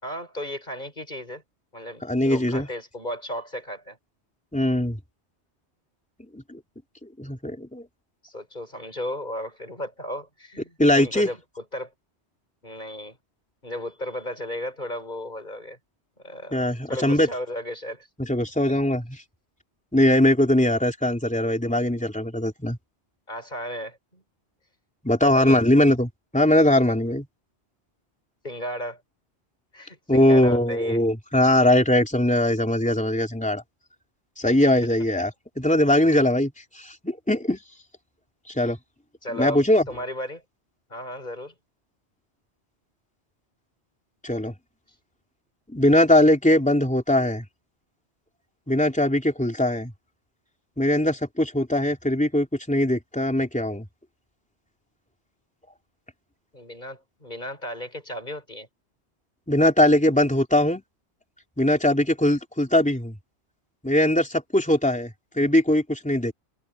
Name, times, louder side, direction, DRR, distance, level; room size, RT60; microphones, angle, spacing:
voice 1, 0.0-1.4 1.7-4.0 8.2-11.9 12.6-13.2 13.6-15.8 16.2-18.1 23.3-24.2 25.2-25.6 28.4-29.0 29.7-31.0 39.2-40.4 40.9-41.5 56.5-58.7, equal, 40° left, 5.3 m, -35 dB
voice 2, 2.0-2.7 4.5-5.0 6.3-6.6 7.2-7.8 10.8-11.3 16.5-17.3 18.2-19.2 19.9-22.8 25.0-27.3 30.1-33.6 34.4-35.3 35.6-37.6 38.6-38.8 39.3-39.9 44.2-44.5 45.7-47.4 48.7-49.9 50.8-53.9 59.5-60.8 61.6-63.2 63.8-66.3, left 1 dB, 5° left, 3.5 m, -21 dB
omnidirectional pair, 1.2 m